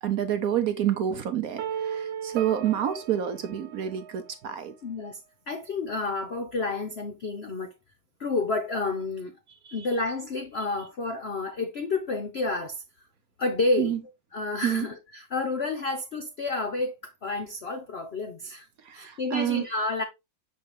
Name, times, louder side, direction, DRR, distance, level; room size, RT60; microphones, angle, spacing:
voice 1, 0.0-4.7 9.6-9.9 13.8-14.0 14.6-14.9 18.8-19.7, right 10 dB, 65° right, 0.9 m, -28 dB
sound 1, 1.6-4.5, right 8 dB, 90° right, 1.5 m, -36 dB
voice 2, 4.8-5.2 5.5-7.7 8.2-9.4 9.7-12.8 13.4-14.0 14.3-18.7 18.9-20.0, left 3 dB, 90° left, 0.5 m, -30 dB
7.0 x 4.4 x 3.1 m
omnidirectional pair, 2.1 m